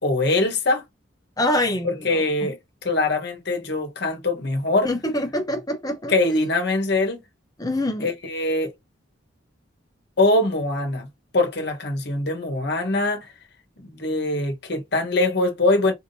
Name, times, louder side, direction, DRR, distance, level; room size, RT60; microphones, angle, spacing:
voice 1, 0.0-0.8 1.8-2.6 2.8-4.9 6.1-7.2 8.0-8.7 10.2-11.1 11.3-13.3 13.8-15.9, left 2 dB, 55° left, 1.3 m, -22 dB
voice 2, 1.4-2.5 4.8-6.3 7.6-8.1, left 1 dB, 20° left, 1.0 m, -26 dB
4.5 x 3.6 x 2.7 m
head